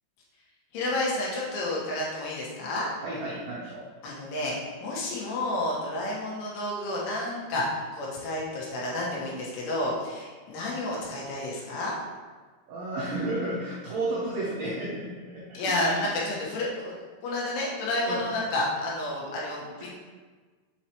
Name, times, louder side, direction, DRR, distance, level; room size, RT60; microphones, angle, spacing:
voice 1, 0.7-2.9 4.0-4.6 4.8-12.0 15.5-19.9, left 1 dB, 90° left, -5 dB, 3.9 m, -30 dB
voice 2, 3.0-3.9 12.7-16.1 18.1-18.2, right 2 dB, 90° right, -6 dB, 1.9 m, -32 dB
7.8 x 4.8 x 3.0 m, 1.4 s
omnidirectional pair, 5.3 m